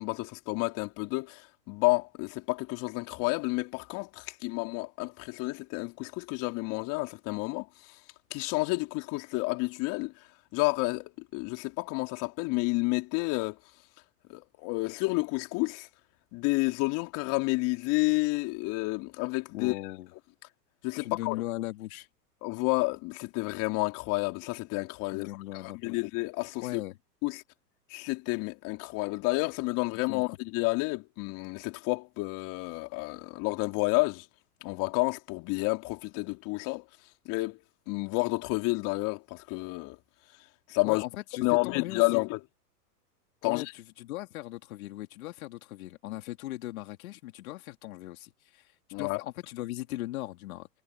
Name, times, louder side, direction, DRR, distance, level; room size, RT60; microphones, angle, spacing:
voice 1, 0.0-7.7 8.3-10.1 10.5-13.6 14.3-15.9 16.3-19.7 20.8-21.4 22.4-25.3 25.6-26.8 27.2-27.4 27.9-34.2 34.6-36.8 37.2-37.6 37.9-40.0 40.7-41.0 41.4-42.4 43.4-43.6 48.9-49.2, left 26 dB, 40° left, 3.3 m, -30 dB
voice 2, 19.5-20.1 21.0-22.1 25.1-26.0 26.6-27.0 30.1-30.4 40.8-42.2 43.4-50.7, left 16 dB, 60° left, 3.1 m, -38 dB
hypercardioid pair, 115°, 48 cm